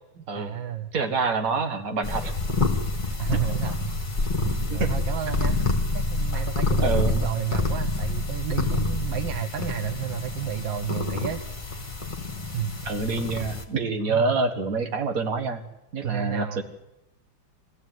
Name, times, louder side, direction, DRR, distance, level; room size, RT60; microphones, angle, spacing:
voice 1, 0.2-0.9 3.0-3.9 4.4-5.6 5.9-11.4 12.5-12.8 14.1-14.4 16.0-16.6, right 10 dB, 80° right, 9 dB, 1.7 m, -32 dB
voice 2, 0.9-2.3 4.7-4.9 5.3-5.6 6.8-7.2 12.9-15.6 15.9-16.6, right 4 dB, 50° right, 7 dB, 2.0 m, -27 dB
sound 1, 2.0-13.6, left 3 dB, 25° left, 2.2 m, -27 dB
23.5 x 15.5 x 9.3 m, 0.93 s
omnidirectional pair, 2.1 m